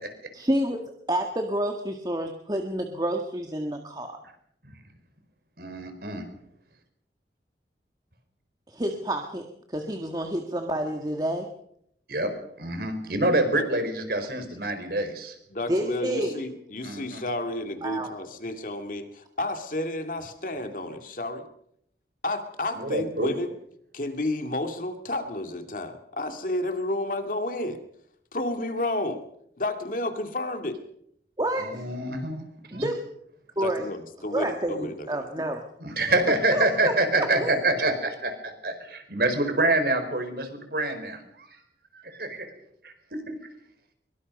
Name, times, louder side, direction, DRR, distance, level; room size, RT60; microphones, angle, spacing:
voice 1, 0.4-0.8 1.1-4.1 8.7-9.4 9.7-11.5 15.7-16.4 17.8-18.1 31.4-31.9 32.7-33.0 33.6-33.9 34.3-35.6 36.5-37.5, right 1 dB, 20° right, 4 dB, 1.8 m, -29 dB
voice 2, 5.6-6.2 12.1-12.3 12.6-15.3 16.8-17.2 22.8-23.3 31.6-32.4 32.7-32.9 35.8-41.5 42.0-42.5 42.8-43.3, right 2 dB, 60° right, 7 dB, 4.9 m, -26 dB
voice 3, 15.5-21.4 22.2-23.5 23.9-27.8 28.3-29.2 29.6-30.8 33.6-35.3, left 1 dB, 50° left, 6 dB, 2.4 m, -31 dB
24.0 x 23.5 x 5.4 m, 0.72 s
head